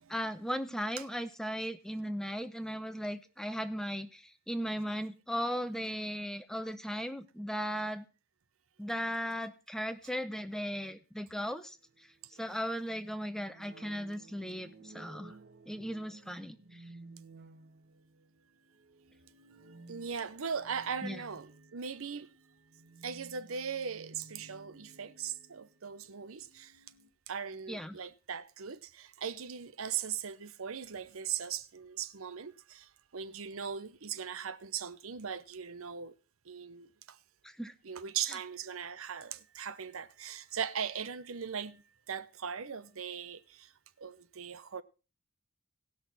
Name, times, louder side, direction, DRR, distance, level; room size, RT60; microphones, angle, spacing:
voice 1, 0.1-8.0 8.8-11.8 12.4-15.4 15.7-16.8 21.0-21.2 27.7-28.0 37.4-37.7, equal, 5° left, 0.7 m, -37 dB
sound 1, 11.8-27.1, right 3 dB, 50° right, 0.9 m, -56 dB
voice 2, 19.9-22.3 23.0-26.7 27.3-32.9 33.1-36.1 36.5-36.9 37.8-41.8 42.1-43.7 44.0-44.8, right 7 dB, 85° right, 0.8 m, -39 dB
18.0 x 6.3 x 4.0 m
head